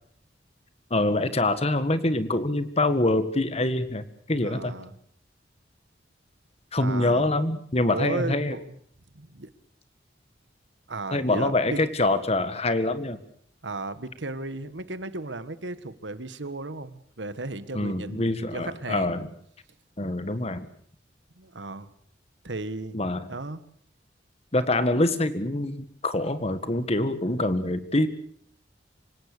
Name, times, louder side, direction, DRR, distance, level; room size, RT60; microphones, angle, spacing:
voice 1, 0.9-4.7 6.7-8.5 11.1-13.2 17.7-19.3 20.0-20.7 22.9-23.3 24.5-28.1, left 2 dB, 35° left, 11 dB, 1.7 m, -25 dB
voice 2, 4.4-4.9 6.8-7.4 7.9-8.7 9.1-9.5 10.9-11.8 13.6-19.2 21.4-21.9 22.4-23.0 23.3-23.6, right 2 dB, 85° right, 13 dB, 1.5 m, -35 dB
26.5 x 18.0 x 6.8 m, 0.62 s
head